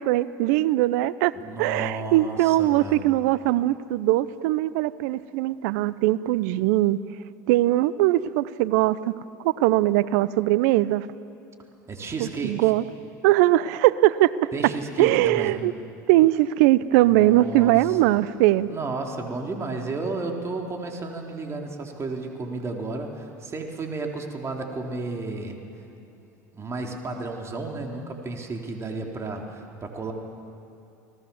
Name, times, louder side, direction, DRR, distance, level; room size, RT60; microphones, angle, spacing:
voice 1, 0.0-1.3 1.6-7.0 7.5-9.1 9.4-11.1 12.2-12.8 13.2-14.5 15.0-15.7 16.1-18.7, right 16 dB, 70° right, 18 dB, 0.7 m, -21 dB
voice 2, 1.4-3.1 11.9-12.7 14.5-15.5 17.0-17.8 18.1-18.2 18.7-25.6 26.5-30.1, right 3 dB, 30° right, 2 dB, 3.7 m, -32 dB
30.0 x 19.5 x 7.2 m, 2.9 s
hypercardioid pair, 80°, 9 cm